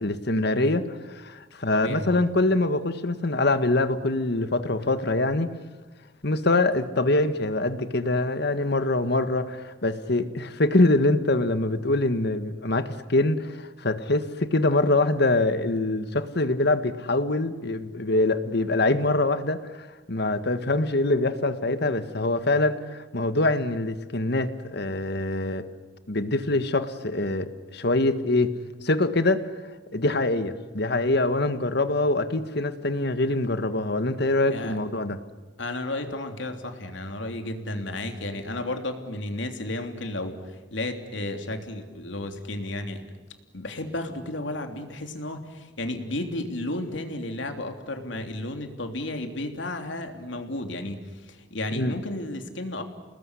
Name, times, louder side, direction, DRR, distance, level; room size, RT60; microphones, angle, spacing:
voice 1, 0.0-5.5 6.2-25.7 26.1-28.5 28.8-29.5 29.9-35.2 51.7-51.9, left 2 dB, 60° left, 11 dB, 1.7 m, -24 dB
voice 2, 1.7-2.2 34.5-34.8 35.6-43.0 43.5-52.8, left 1 dB, 75° left, 5 dB, 3.3 m, -33 dB
29.5 x 20.0 x 9.9 m, 1.2 s
head